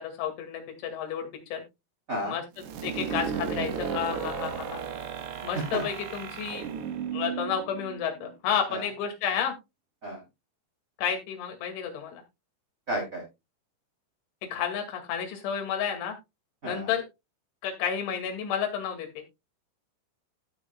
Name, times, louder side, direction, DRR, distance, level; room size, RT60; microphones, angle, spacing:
voice 1, 0.0-1.6 2.2-4.8 5.4-6.7 7.1-9.5 11.0-12.2 14.5-16.2 16.6-17.0 17.6-19.1, left 8 dB, 75° left, 4 dB, 4.5 m, -31 dB
sound 1, 2.6-8.3, right 7 dB, 70° right, 3.1 m, -34 dB
voice 2, 12.9-13.2 16.6-16.9, right 1 dB, 20° right, 0 dB, 2.6 m, -31 dB
16.5 x 6.3 x 2.3 m, 0.23 s
omnidirectional pair, 5.5 m